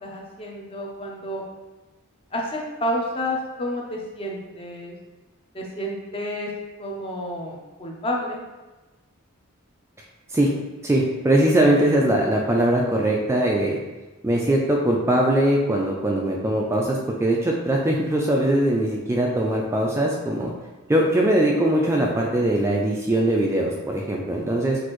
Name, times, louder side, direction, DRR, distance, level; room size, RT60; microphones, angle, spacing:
voice 1, 0.0-1.4 2.3-4.9 5.5-6.5 6.8-8.4, equal, 25° left, -1 dB, 0.6 m, -30 dB
voice 2, 10.8-13.8 14.2-20.5 20.9-24.8, right 1 dB, 15° right, -2 dB, 0.3 m, -21 dB
6.1 x 2.5 x 3.0 m, 1.2 s
head